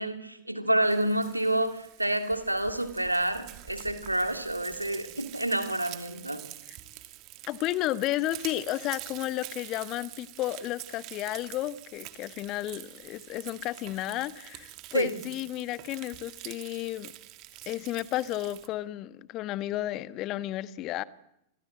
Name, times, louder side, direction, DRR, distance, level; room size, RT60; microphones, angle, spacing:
voice 1, 0.0-6.4 14.9-15.1, right 1 dB, 85° right, 8 dB, 3.0 m, -28 dB
Frying (food), 0.8-18.7, right 16 dB, 40° right, 2.4 m, -46 dB
voice 2, 7.5-17.1 17.7-21.0, left 15 dB, 40° left, 16 dB, 1.4 m, -32 dB
29.5 x 24.0 x 7.9 m, 0.81 s
figure-of-eight pair, 90°, 0 cm